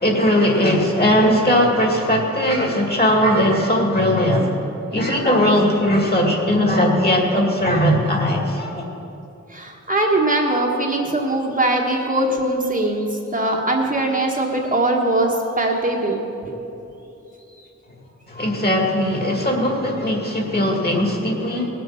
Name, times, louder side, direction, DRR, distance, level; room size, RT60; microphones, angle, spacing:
voice 1, 0.0-4.6 4.9-8.8 18.3-21.7, equal, 35° left, 0 dB, 2.3 m, -19 dB
voice 2, 9.5-13.1 13.3-16.2, right 2 dB, 30° right, -1 dB, 1.4 m, -21 dB
18.5 x 7.8 x 5.8 m, 2.9 s
wide cardioid pair, 120°, 29 cm